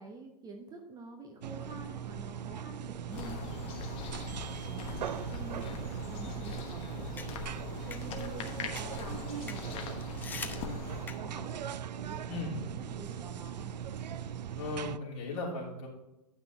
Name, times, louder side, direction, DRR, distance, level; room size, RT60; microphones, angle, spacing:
voice 1, 0.0-4.0 4.3-7.4 7.8-9.9 10.3-11.6 12.0-13.7, right 3 dB, 20° right, 3 dB, 0.9 m, -47 dB
sound 1, 1.4-15.0, right 9 dB, 85° right, 0.5 m, -40 dB
sound 2, 3.1-11.1, left 6 dB, 25° left, 1.1 m, -42 dB
sound 3, 7.1-11.5, left 5 dB, 10° left, 0.5 m, -47 dB
voice 2, 14.6-15.9, left 3 dB, 45° left, -2 dB, 3.2 m, -37 dB
9.6 x 6.0 x 3.9 m, 0.94 s
hypercardioid pair, 135°, 21 cm